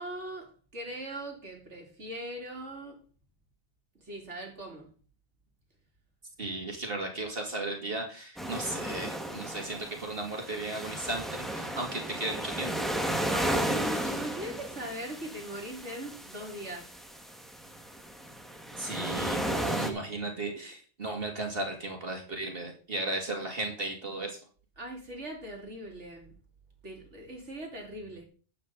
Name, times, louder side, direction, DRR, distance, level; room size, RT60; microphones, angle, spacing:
voice 1, 0.0-3.0 4.0-4.9 13.3-17.0 24.8-26.3 26.8-28.2, right 1 dB, 85° right, 3.3 m, -40 dB
voice 2, 6.4-12.8 18.8-24.4, right 2 dB, 55° right, 2.6 m, -35 dB
sound 1, 8.4-19.9, right 1 dB, ahead, 1.6 m, -34 dB
12.5 x 8.6 x 4.0 m
omnidirectional pair, 1.2 m